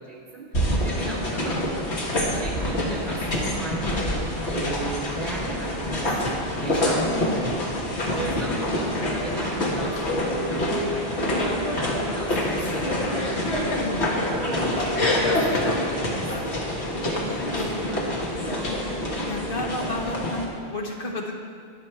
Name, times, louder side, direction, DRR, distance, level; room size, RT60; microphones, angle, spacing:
voice 1, 0.0-1.6 2.1-6.3 6.6-7.3 8.1-13.8 14.3-16.5 17.1-18.5, right 2 dB, 45° right, -3 dB, 3.7 m, -36 dB
sound 1, 0.5-20.5, left 1 dB, 90° left, 1.9 m, -26 dB
voice 2, 19.3-21.4, left 1 dB, 55° left, 1 dB, 1.2 m, -31 dB
21.5 x 7.1 x 4.5 m, 2.2 s
omnidirectional pair, 1.1 m